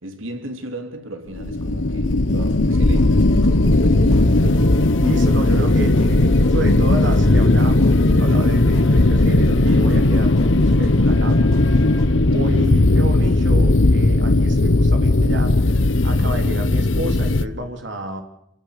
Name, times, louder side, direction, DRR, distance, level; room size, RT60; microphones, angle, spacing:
voice 1, 0.0-4.7, right 1 dB, 85° right, 3.4 m, -35 dB
sound 1, 1.4-17.5, left 2 dB, 70° left, 1.2 m, -16 dB
sound 2, 2.4-12.1, left 1 dB, 25° left, 7.3 m, -37 dB
voice 2, 5.0-11.6 12.1-18.2, right 1 dB, 65° right, 3.4 m, -30 dB
28.0 x 17.5 x 6.8 m
head